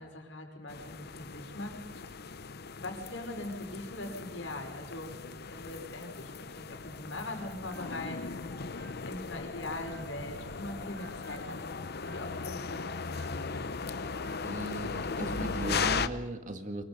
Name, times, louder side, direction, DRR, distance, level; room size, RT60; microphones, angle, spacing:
voice 1, 0.0-2.0 2.7-5.2 5.5-8.4 9.0-11.6 12.0-13.8, left 1 dB, 80° left, 3 dB, 5.2 m, -41 dB
sound 1, 0.7-16.1, left 5 dB, 60° left, 0.8 m, -38 dB
sound 2, 7.4-10.4 10.7-14.8 15.0-15.9, right 1 dB, 15° left, 1.8 m, -57 dB
voice 2, 14.4-16.8, right 1 dB, 40° right, 7 dB, 2.0 m, -37 dB
24.0 x 22.5 x 5.5 m, 1.1 s
head